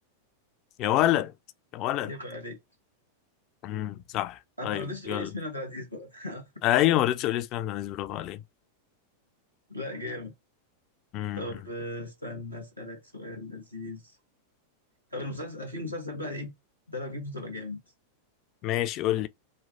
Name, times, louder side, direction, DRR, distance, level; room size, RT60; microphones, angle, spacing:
voice 1, 0.8-1.3 1.7-2.1 3.6-5.3 6.6-8.4 11.1-11.5 18.6-19.3, left 13 dB, 40° left, 0.3 m, -27 dB
voice 2, 2.0-2.6 4.6-6.5 9.7-10.3 11.4-14.0 15.1-16.5 16.9-17.8, left 1 dB, 90° right, 1.2 m, -37 dB
3.1 x 2.2 x 2.6 m
figure-of-eight pair, 90°, 0 cm